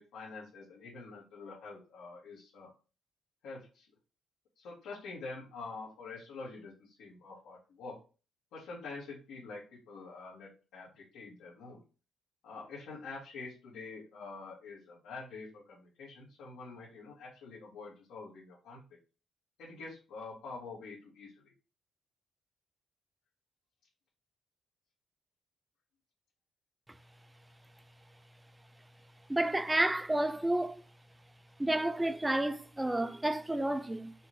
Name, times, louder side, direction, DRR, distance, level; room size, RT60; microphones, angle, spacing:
voice 1, 0.0-2.7 3.4-3.9 4.6-8.0 8.5-9.6 9.9-11.8 12.4-18.8 19.6-21.5, left 3 dB, 90° left, 2.2 m, -46 dB
voice 2, 29.3-30.8 31.6-34.1, right 1 dB, 10° right, 0.4 m, -30 dB
5.6 x 2.5 x 3.1 m
cardioid pair, 90°, 0 cm